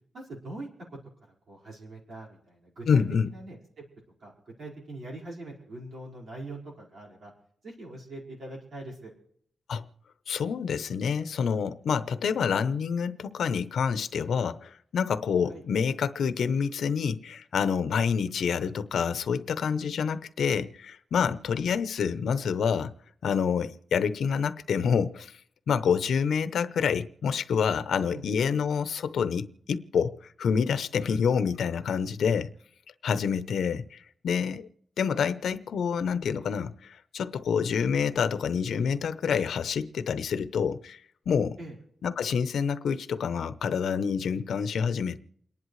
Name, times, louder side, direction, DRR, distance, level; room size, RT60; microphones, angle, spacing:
voice 1, 0.1-1.0 1.5-3.8 4.2-7.3 7.6-9.1 15.5-15.6 28.1-28.2 41.6-41.8, right 2 dB, 55° right, 4.8 m, -42 dB
voice 2, 2.9-3.3 9.7-9.8 10.3-22.9 23.2-25.3 25.7-32.5 33.0-34.7 35.0-41.0 41.3-41.6 42.0-45.2, left 6 dB, 85° left, 0.8 m, -27 dB
29.0 x 11.0 x 3.2 m
wide cardioid pair, 170°, 0 cm